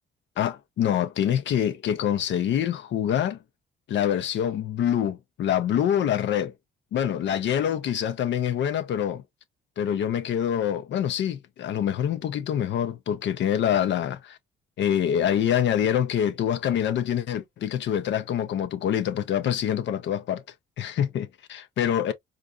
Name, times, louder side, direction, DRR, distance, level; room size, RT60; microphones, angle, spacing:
voice 1, 0.4-3.4 3.9-6.5 6.9-9.2 9.8-14.4 14.8-20.4 20.8-22.1, left 9 dB, 65° left, 0.5 m, -25 dB
3.9 x 2.5 x 2.3 m
cardioid pair, 90°, 20 cm